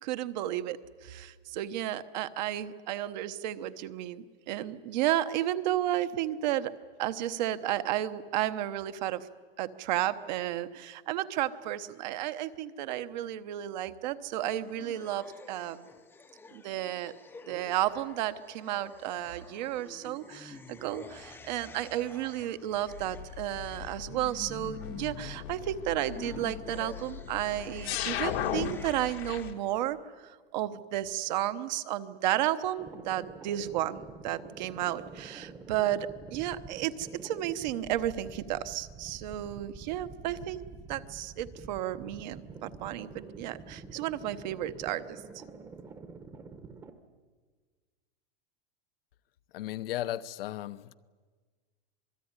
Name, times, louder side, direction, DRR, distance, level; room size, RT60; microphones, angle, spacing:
voice 1, 0.0-6.7 7.0-9.3 9.6-15.9 16.5-17.1 17.5-30.0 30.2-40.6 40.9-45.2, right 13 dB, 45° right, 1.0 m, -33 dB
sound 1, 14.5-29.5, left 3 dB, 5° left, 0.7 m, -48 dB
sound 2, 22.9-29.5, left 10 dB, 90° left, 2.4 m, -37 dB
sound 3, 32.8-46.9, right 4 dB, 10° right, 1.0 m, -47 dB
voice 2, 49.5-51.0, left 13 dB, 65° left, 0.9 m, -35 dB
26.5 x 20.0 x 9.7 m
supercardioid pair, 175°, 30 cm